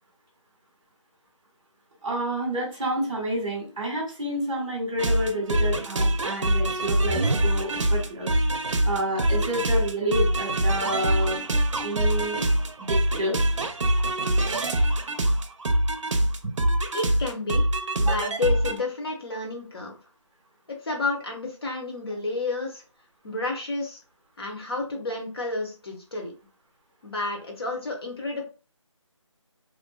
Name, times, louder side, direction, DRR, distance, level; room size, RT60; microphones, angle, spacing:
voice 1, 2.0-8.3 8.8-11.4 11.8-12.4 12.8-13.4 18.0-18.3, equal, 10° right, -10 dB, 0.6 m, -29 dB
sound 1, 5.0-18.8, right 1 dB, 65° right, 0.5 m, -24 dB
voice 2, 16.9-17.7 18.0-20.0 20.8-22.8 23.2-24.0 24.4-26.3 27.0-28.4, left 3 dB, 50° left, 0 dB, 0.8 m, -30 dB
2.5 x 2.2 x 2.2 m, 0.34 s
figure-of-eight pair, 165°, 17 cm